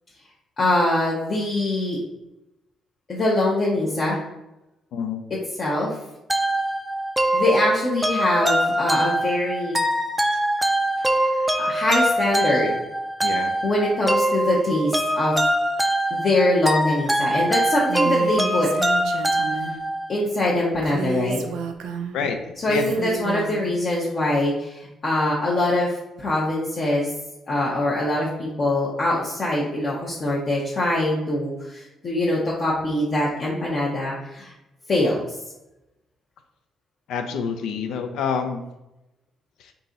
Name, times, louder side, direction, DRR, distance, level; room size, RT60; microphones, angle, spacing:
voice 1, 0.6-2.0 3.1-4.2 5.6-5.9 7.3-9.8 11.6-12.7 13.6-15.3 16.1-18.7 20.1-21.4 22.6-27.1 27.5-34.5 34.9-35.3, left 1 dB, 45° left, -6 dB, 0.8 m, -23 dB
voice 2, 4.9-5.2 13.2-13.5 19.7-19.8 22.1-22.9 37.1-38.6 39.6-39.7, left 6 dB, 85° left, 6 dB, 0.4 m, -28 dB
sound 1, 6.3-20.1, right 1 dB, 5° right, 0.4 m, -23 dB
Female speech woman speaking, 17.9-19.8 20.8-22.2 22.7-23.7, right 5 dB, 90° right, 0.4 m, -31 dB
3.8 x 2.8 x 3.7 m, 0.93 s
cardioid pair, 90°, 0 cm